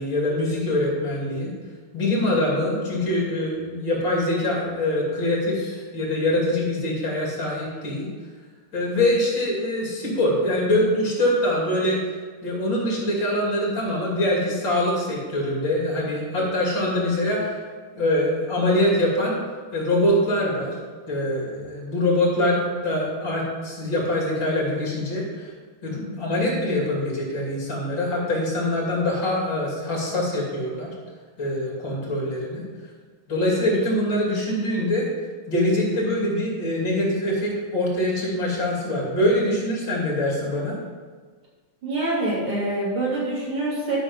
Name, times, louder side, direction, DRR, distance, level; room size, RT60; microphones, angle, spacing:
voice 1, 0.0-1.5 1.9-8.1 8.7-12.0 12.4-17.6 17.9-19.4 19.7-20.7 21.1-25.5 25.8-30.9 31.4-32.6 33.3-35.1 35.5-40.8, left 1 dB, 60° left, -3 dB, 3.5 m, -24 dB
voice 2, 41.8-44.0, right 2 dB, 85° right, -6 dB, 3.9 m, -25 dB
12.0 x 6.1 x 5.4 m, 1.5 s
omnidirectional pair, 2.3 m